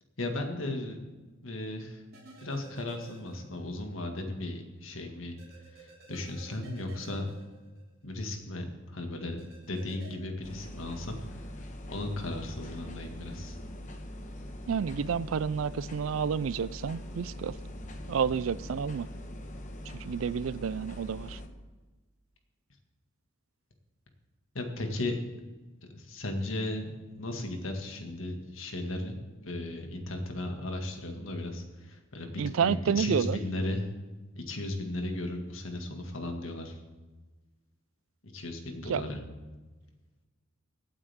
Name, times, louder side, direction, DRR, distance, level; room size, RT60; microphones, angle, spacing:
voice 1, 0.2-1.0 1.4-2.0 2.4-5.4 5.7-7.2 8.0-9.4 9.7-11.5 11.9-13.6 24.5-25.2 25.9-26.9 27.2-33.9 34.4-36.8 38.2-39.2, left 1 dB, 70° left, 4 dB, 2.0 m, -36 dB
sound 1, 2.1-3.8 4.1-4.2 5.4-8.2 9.4-10.1, right 3 dB, 50° right, 3.0 m, -52 dB
sound 2, 10.4-21.5, equal, 35° left, 1.2 m, -42 dB
voice 2, 14.7-17.6 18.1-19.1 20.0-21.4 32.4-33.4 38.9-39.0, right 7 dB, 75° right, 19 dB, 0.4 m, -30 dB
24.5 x 8.7 x 3.6 m, 1.2 s
head